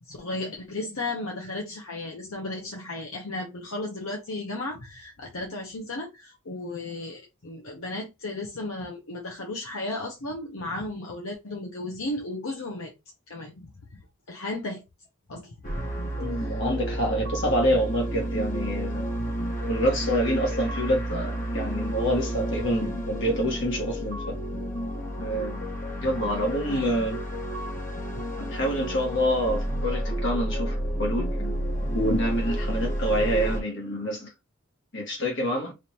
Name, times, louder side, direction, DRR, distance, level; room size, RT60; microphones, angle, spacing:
voice 1, 0.0-12.9 13.3-14.0 14.3-14.8 15.3-15.8 16.4-16.6 26.7-26.9, left 2 dB, 75° left, 0.9 m, -35 dB
sound 1, 15.6-33.6, equal, 40° left, 1.2 m, -30 dB
voice 2, 16.2-19.1 19.6-24.4 25.2-25.6 26.0-27.2 28.4-31.4 31.8-34.3 34.9-35.7, equal, 55° left, 1.5 m, -27 dB
5.0 x 2.6 x 2.9 m
head